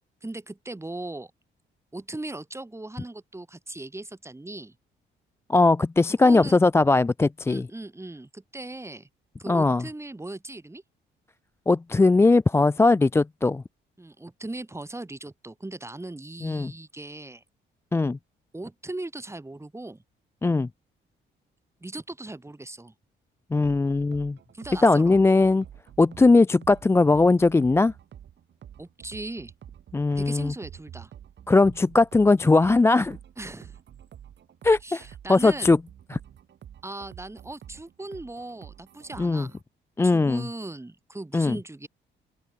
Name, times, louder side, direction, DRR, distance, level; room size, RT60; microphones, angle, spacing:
voice 1, 0.2-1.3 1.9-4.7 6.2-6.6 7.5-9.1 9.4-10.8 14.0-17.4 18.5-20.0 21.8-22.9 24.5-25.2 28.8-29.5 30.2-31.1 33.4-33.8 34.8-35.8 36.8-39.6 40.0-41.9, right 2 dB, 15° right, 5.5 m, -38 dB
voice 2, 5.5-7.7 9.5-9.8 11.7-13.6 16.4-16.7 17.9-18.2 20.4-20.7 23.5-24.4 24.8-25.6 26.0-27.9 29.9-30.5 31.5-33.2 34.6-35.0 35.3-35.8 36.1-36.2 39.2-39.5 40.0-40.5 41.3-41.6, left 3 dB, 15° left, 0.4 m, -19 dB
sound 1, 23.6-39.6, right 9 dB, 65° right, 3.9 m, -48 dB
open air
cardioid pair, 90°, 20 cm